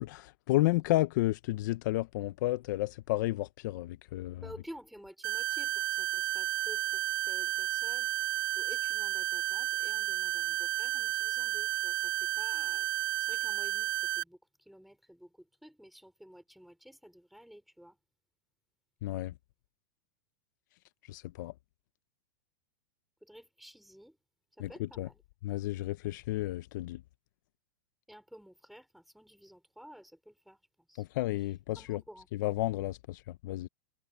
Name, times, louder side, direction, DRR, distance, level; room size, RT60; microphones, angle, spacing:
voice 1, 0.0-4.4 19.0-19.3 21.1-21.5 24.6-25.1 25.4-27.0 31.0-32.0 32.3-33.7, left 17 dB, 55° left, 0.9 m, -32 dB
voice 2, 4.4-8.2 8.6-12.9 13.2-14.4 14.7-18.0 23.2-24.2 24.6-25.2 28.1-30.6 30.9-31.0 31.7-32.3, equal, ahead, 4.0 m, -52 dB
sound 1, 5.2-14.2, right 14 dB, 75° right, 1.0 m, -32 dB
supercardioid pair, 140°, 12 cm